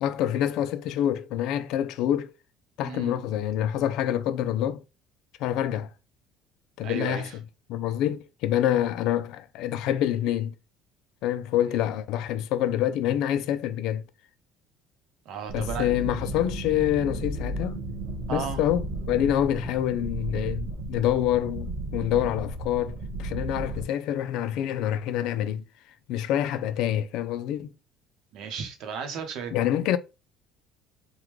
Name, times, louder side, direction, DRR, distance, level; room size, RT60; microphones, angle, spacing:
voice 1, 0.0-2.3 2.8-4.8 5.4-5.9 6.8-7.3 7.7-10.5 11.2-14.0 15.5-17.8 18.3-25.6 26.1-27.7 29.5-30.0, left 11 dB, 70° left, 0.3 m, -26 dB
voice 2, 2.8-3.2 6.8-7.4 11.7-11.9 15.2-15.9 18.3-18.6 28.3-29.5, right 6 dB, 65° right, 0.8 m, -34 dB
sound 1, 15.5-23.9, right 1 dB, 85° right, 1.4 m, -34 dB
3.6 x 2.2 x 3.0 m
cardioid pair, 130°, 0 cm